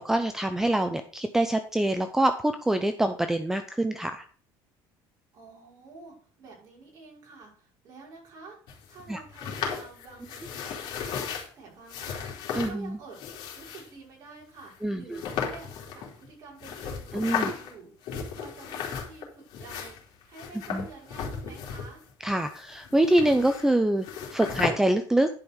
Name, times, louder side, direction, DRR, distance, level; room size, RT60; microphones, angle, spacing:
voice 1, 0.0-4.3 9.1-9.2 12.5-13.0 14.8-15.2 17.1-17.5 20.7-20.9 22.2-24.1 24.3-25.3, right 1 dB, 5° right, 8 dB, 0.6 m, -25 dB
voice 2, 5.3-8.6 8.9-13.2 13.5-22.0, right 4 dB, 40° right, -3 dB, 5.9 m, -49 dB
sound 1, 8.7-11.5 11.9-12.7 13.1-13.9 14.6-14.7 15.1-16.3 16.6-17.7 18.0-19.3 19.5-22.1 22.4-23.7 24.0-24.7, left 7 dB, 60° left, 3.2 m, -35 dB
10.5 x 5.5 x 6.4 m, 0.43 s
cardioid pair, 165°, 9 cm